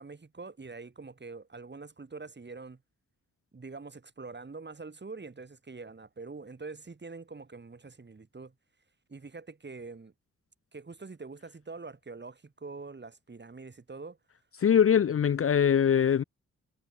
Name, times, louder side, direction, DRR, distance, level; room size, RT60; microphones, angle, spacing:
voice 1, 0.0-2.8 3.5-8.5 9.1-10.1 10.7-14.2, right 4 dB, 35° right, 2.2 m, -44 dB
voice 2, 14.6-16.2, left 8 dB, 45° left, 0.6 m, -22 dB
supercardioid pair, 45°, 32 cm